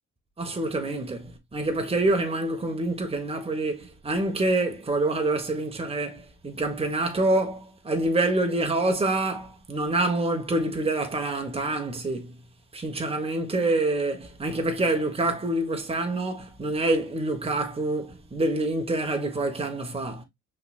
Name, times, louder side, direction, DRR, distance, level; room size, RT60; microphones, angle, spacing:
voice 1, 0.4-12.4 12.7-20.2, right 2 dB, 20° right, 1.2 m, -26 dB
5.6 x 3.5 x 2.3 m
cardioid pair, 90°, 30 cm